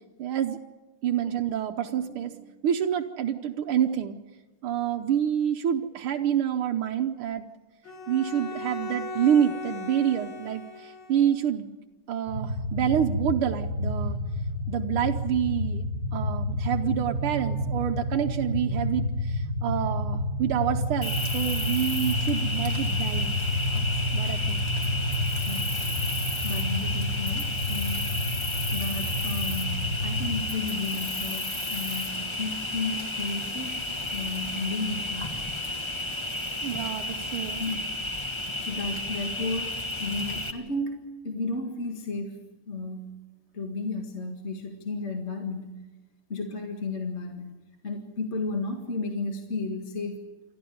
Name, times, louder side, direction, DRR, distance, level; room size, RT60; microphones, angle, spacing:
voice 1, 0.2-0.6 1.0-4.2 4.6-7.5 8.1-11.7 12.1-14.2 14.7-15.9 16.1-23.4 23.7-23.8 24.1-24.6 36.6-37.6, right 9 dB, 85° right, 4 dB, 1.8 m, -27 dB
Bowed string instrument, 7.8-11.3, left 3 dB, 65° left, 5.0 m, -38 dB
sound 1, 12.3-30.4, left 1 dB, 85° left, 7.9 m, -30 dB
Cricket, 21.0-40.5, left 2 dB, 15° left, 1.2 m, -32 dB
voice 2, 25.4-25.9 26.4-28.0 28.7-33.7 34.1-35.3 37.6-37.8 38.6-43.1 43.5-45.8 46.3-47.5 47.8-50.2, left 3 dB, 35° left, 3 dB, 2.0 m, -33 dB
28.0 x 12.5 x 9.4 m, 1.2 s
omnidirectional pair, 2.3 m